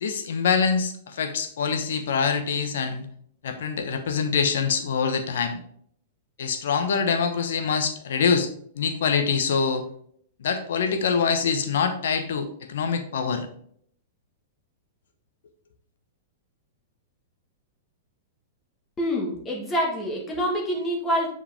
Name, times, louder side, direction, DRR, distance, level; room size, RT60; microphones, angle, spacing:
voice 1, 0.0-3.1 3.4-5.6 6.4-8.5 8.8-9.8 10.4-13.5, left 6 dB, 70° left, 7 dB, 1.1 m, -25 dB
voice 2, 19.0-21.3, equal, 20° left, -1 dB, 1.6 m, -26 dB
6.9 x 5.0 x 3.5 m, 0.63 s
hypercardioid pair, 110°, 0 cm